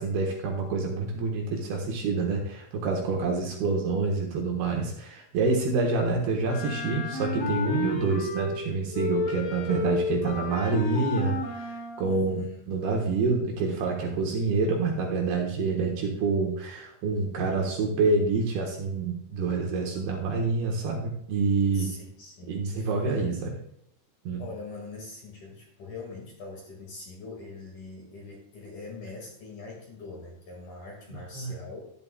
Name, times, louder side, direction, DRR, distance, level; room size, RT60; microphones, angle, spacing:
voice 1, 0.0-12.4 12.7-21.9 22.5-23.6 24.2-24.4 31.3-31.5, right 4 dB, 65° right, 0 dB, 2.9 m, -27 dB
Wind instrument woodwind instrument, 6.4-8.6 8.9-12.0, left 3 dB, 80° left, 4.4 m, -31 dB
voice 2, 12.0-12.7 21.7-23.3 24.4-31.8, left 3 dB, 50° left, -1 dB, 3.0 m, -43 dB
12.0 x 11.0 x 2.3 m, 0.71 s
omnidirectional pair, 5.3 m